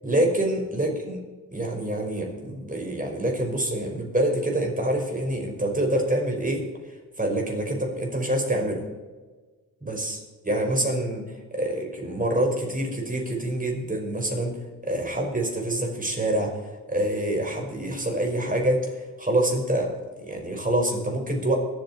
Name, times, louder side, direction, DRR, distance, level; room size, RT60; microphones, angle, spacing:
voice 1, 0.0-1.2 1.5-6.7 7.2-8.8 9.8-11.2 11.5-14.6 14.8-16.6 16.9-18.9 19.2-19.9 20.2-21.6, right 1 dB, 20° right, 1 dB, 5.3 m, -26 dB
23.5 x 8.1 x 4.4 m, 1.3 s
hypercardioid pair, 45°, 42 cm